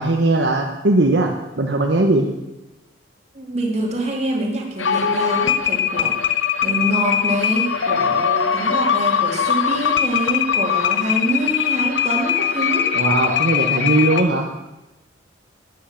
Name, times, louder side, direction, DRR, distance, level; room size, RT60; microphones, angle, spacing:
voice 1, 0.0-2.3 12.9-14.5, right 2 dB, 60° right, 1 dB, 1.1 m, -19 dB
voice 2, 3.3-6.3 6.6-12.9, right 1 dB, 35° right, 0 dB, 2.6 m, -25 dB
sound 1, 4.8-14.2, left 8 dB, 75° left, 1.0 m, -21 dB
12.0 x 10.0 x 7.2 m, 1.0 s
head